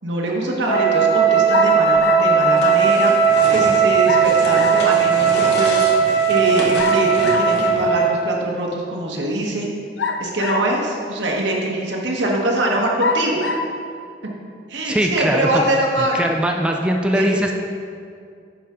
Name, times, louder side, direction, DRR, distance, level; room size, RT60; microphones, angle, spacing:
voice 1, 0.0-3.1 3.5-5.8 6.3-9.7 10.2-13.4 14.7-16.3 17.1-17.3, right 1 dB, 80° right, -1 dB, 1.3 m, -23 dB
Wind instrument woodwind instrument, 0.6-8.3, right 6 dB, 40° left, 0.8 m, -17 dB
sound 1, 1.5-2.4 4.1-4.9 6.8-7.6 10.0-10.8 11.6-11.7 13.0-13.7, left 4 dB, 85° left, 0.5 m, -25 dB
sound 2, 2.5-8.0, left 1 dB, 65° left, 1.1 m, -30 dB
voice 2, 14.8-15.6 16.0-17.6, equal, 5° right, 1 dB, 0.4 m, -21 dB
9.7 x 5.6 x 3.7 m, 2.3 s
head